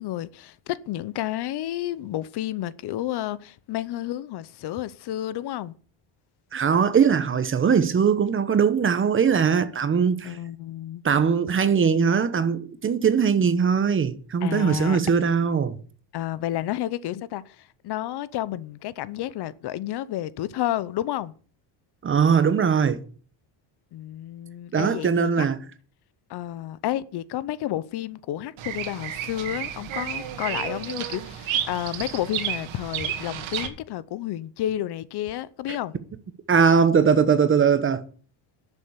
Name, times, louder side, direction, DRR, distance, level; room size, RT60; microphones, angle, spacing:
voice 1, 0.0-5.7 10.2-11.0 14.4-15.0 16.1-21.3 23.9-25.5 26.3-36.0, left 13 dB, 55° left, 0.8 m, -31 dB
voice 2, 6.5-10.3 11.0-15.8 22.0-23.0 24.7-25.6 36.5-38.0, right 6 dB, 25° right, 0.9 m, -20 dB
Bird vocalization bird call bird song, 28.6-33.7, right 10 dB, 70° right, 2.3 m, -31 dB
11.5 x 7.2 x 8.2 m
cardioid pair, 155°, 49 cm